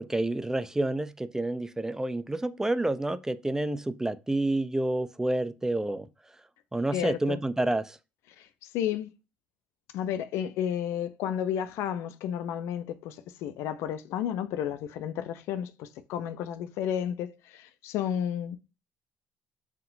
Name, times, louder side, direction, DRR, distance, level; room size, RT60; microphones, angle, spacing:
voice 1, 0.0-6.1 6.7-8.0, right 2 dB, 10° right, 0.4 m, -29 dB
voice 2, 6.9-7.4 8.4-9.1 9.9-18.6, left 9 dB, 70° left, 0.4 m, -32 dB
5.6 x 3.7 x 2.6 m
hypercardioid pair, 60°, 5 cm